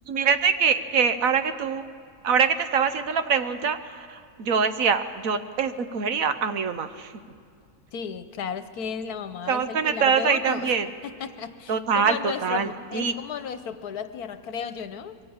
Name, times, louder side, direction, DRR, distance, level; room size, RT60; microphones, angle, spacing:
voice 1, 0.1-1.8 2.2-7.1 9.5-10.9 11.7-13.1, right 6 dB, 65° right, 10 dB, 1.3 m, -24 dB
voice 2, 7.9-10.7 11.2-15.2, left 7 dB, 80° left, 10 dB, 1.4 m, -34 dB
23.0 x 15.0 x 8.8 m, 2.2 s
omnidirectional pair, 1.6 m